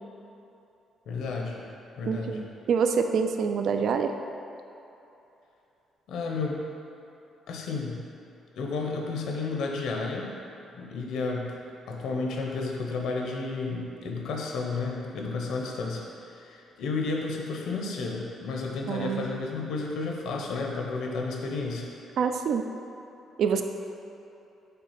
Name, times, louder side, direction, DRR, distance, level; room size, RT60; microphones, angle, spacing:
voice 1, 1.1-1.6 2.0-2.4 6.1-6.6 7.5-8.1 8.6-10.3 10.7-11.6 11.9-21.9, left 3 dB, 70° left, 0 dB, 0.9 m, -32 dB
voice 2, 2.1-4.1 18.9-19.3 22.2-22.6 23.4-23.6, right 6 dB, 55° right, 6 dB, 0.4 m, -26 dB
5.8 x 3.8 x 5.8 m, 2.9 s
cardioid pair, 165°, 0 cm